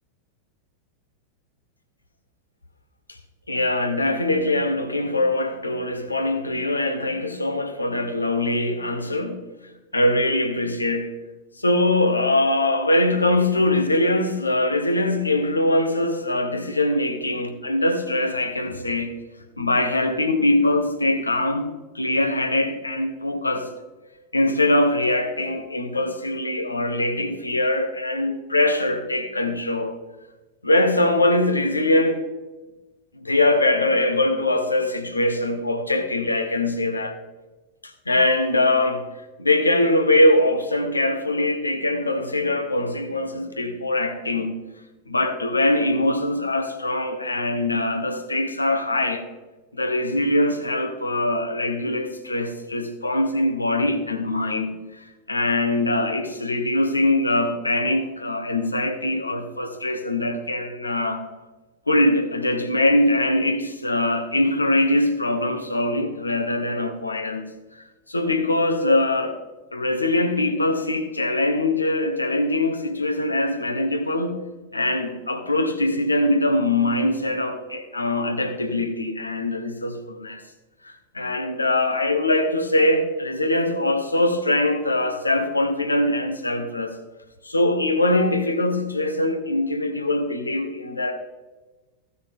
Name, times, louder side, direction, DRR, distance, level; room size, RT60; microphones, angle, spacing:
voice 1, 3.5-9.5 9.9-11.1 11.6-19.1 19.6-23.7 24.3-30.0 30.6-32.2 33.2-37.2 37.8-39.1 39.4-44.6 45.1-49.3 49.7-54.8 55.3-61.3 61.9-67.4 68.1-69.4 69.7-74.5 74.7-80.4 80.8-87.0 87.4-91.1, left 1 dB, 80° left, 1.2 m, -22 dB
15.0 x 6.3 x 3.6 m
figure-of-eight pair, 90°, 0 cm